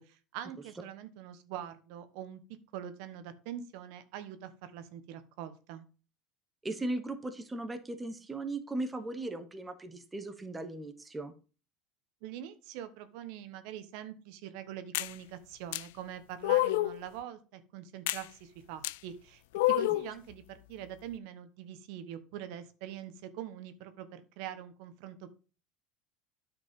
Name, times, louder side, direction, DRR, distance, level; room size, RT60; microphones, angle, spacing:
voice 1, 0.0-2.4 2.7-5.9 12.2-19.4 19.7-25.3, right 10 dB, 70° right, 11 dB, 1.2 m, -44 dB
voice 2, 6.6-11.3, right 2 dB, 10° right, 8 dB, 1.1 m, -37 dB
sound 1, 14.9-15.1 15.7-15.8 16.4-17.0 18.1-18.2 18.8-19.0 19.5-20.1, left 17 dB, 85° left, 0.4 m, -28 dB
9.5 x 5.2 x 5.3 m, 0.35 s
supercardioid pair, 140°, 0 cm